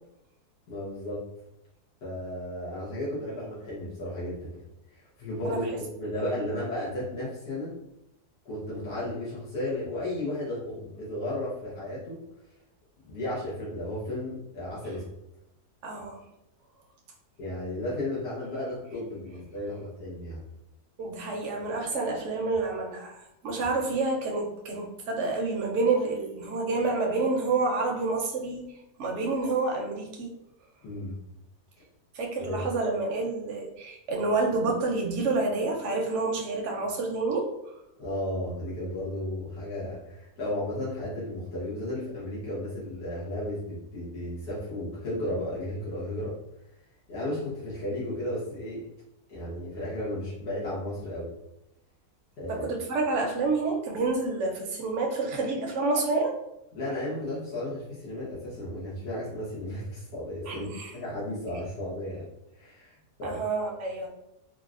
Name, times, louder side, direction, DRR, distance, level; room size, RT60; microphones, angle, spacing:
voice 1, 0.7-1.2 2.0-4.5 4.9-7.7 8.4-12.2 13.0-15.0 17.4-20.4 30.8-31.1 32.4-32.6 38.0-46.3 47.1-48.8 49.3-51.3 52.4-52.7 56.7-62.2 62.5-63.4, left 1 dB, 80° left, -9 dB, 1.6 m, -34 dB
voice 2, 5.4-5.8 15.8-16.2 21.0-28.7 29.0-30.3 32.1-37.5 52.5-56.3 60.5-60.9 63.2-64.1, right 3 dB, 60° right, 0 dB, 0.8 m, -28 dB
3.9 x 2.0 x 2.4 m, 0.86 s
omnidirectional pair, 1.7 m